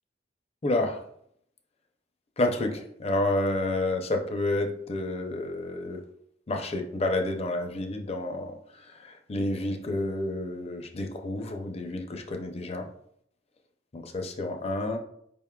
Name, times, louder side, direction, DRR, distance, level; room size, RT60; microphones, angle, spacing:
voice 1, 0.6-1.0 2.4-6.0 6.5-12.9 13.9-15.0, left 2 dB, 35° left, 4 dB, 0.5 m, -30 dB
5.1 x 3.5 x 2.3 m, 0.69 s
head